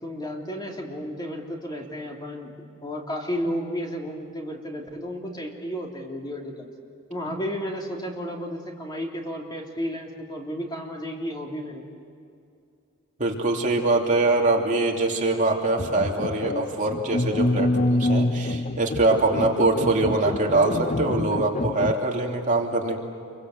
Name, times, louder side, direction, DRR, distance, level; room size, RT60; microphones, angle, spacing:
voice 1, 0.0-2.5 2.8-6.7 7.1-11.8, equal, 20° left, 0 dB, 3.2 m, -32 dB
voice 2, 13.2-23.0, right 2 dB, 40° right, 0 dB, 3.0 m, -23 dB
sound 1, 15.8-21.9, left 1 dB, 35° left, 0.5 m, -26 dB
28.5 x 24.0 x 7.9 m, 2.4 s
head